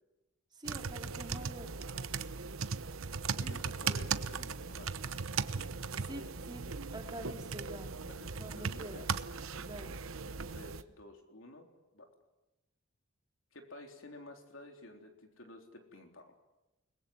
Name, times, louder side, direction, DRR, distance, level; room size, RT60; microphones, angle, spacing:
voice 1, 0.6-1.9 6.0-6.6 6.9-7.9 8.4-9.1 9.6-10.0, right 1 dB, 20° right, 2 dB, 3.6 m, -46 dB
sound 1, 0.6-10.8, right 5 dB, 75° right, 1.0 m, -38 dB
voice 2, 3.3-4.9 8.1-9.1 10.3-11.7 11.9-12.1 13.5-16.4, left 1 dB, 65° left, 4 dB, 3.9 m, -52 dB
29.5 x 21.5 x 7.9 m, 1.0 s
head